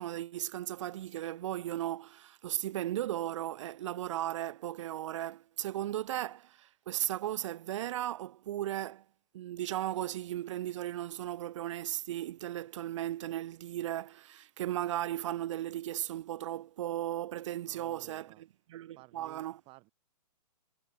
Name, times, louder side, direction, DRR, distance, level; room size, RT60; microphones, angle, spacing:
voice 1, 0.0-9.0 9.3-18.3 18.7-19.6, right 13 dB, 50° right, 0.9 m, -36 dB
voice 2, 17.6-18.4 19.0-19.9, right 23 dB, 30° right, 2.7 m, -56 dB
hypercardioid pair, 140°, 20 cm